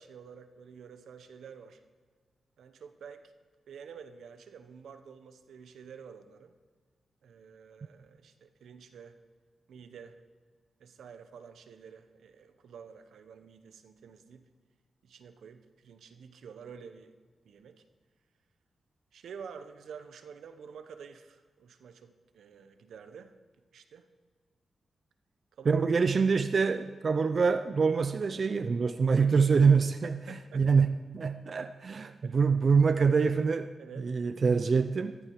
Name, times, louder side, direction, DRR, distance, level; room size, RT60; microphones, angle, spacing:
voice 1, 0.0-1.8 2.6-3.3 3.7-6.6 7.2-9.2 9.7-10.2 10.8-14.5 15.0-17.1 17.4-17.8 19.1-23.3 23.7-24.1 25.6-25.8 30.0-30.9 32.0-32.4 33.8-34.2, right 6 dB, 90° right, 9 dB, 1.0 m, -49 dB
voice 2, 25.7-30.2 30.5-33.7 34.0-35.1, right 5 dB, 50° right, 11 dB, 0.5 m, -25 dB
14.5 x 13.5 x 4.7 m, 1.5 s
cardioid pair, 80°, 0 cm